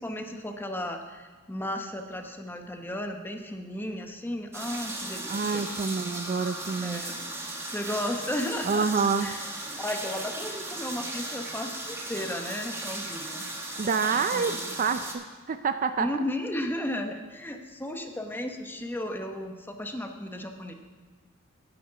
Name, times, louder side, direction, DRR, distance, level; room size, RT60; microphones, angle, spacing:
voice 1, 0.0-5.7 6.8-7.1 7.6-8.9 9.2-9.4 9.8-13.5 14.1-14.8 16.0-20.7, left 1 dB, 10° left, 4 dB, 0.9 m, -34 dB
sound 1, 4.5-15.1, right 2 dB, 10° right, 1.3 m, -36 dB
voice 2, 5.3-7.0 8.6-9.3 13.8-16.1, right 5 dB, 40° right, 10 dB, 0.4 m, -27 dB
9.5 x 9.3 x 6.1 m, 1.4 s
head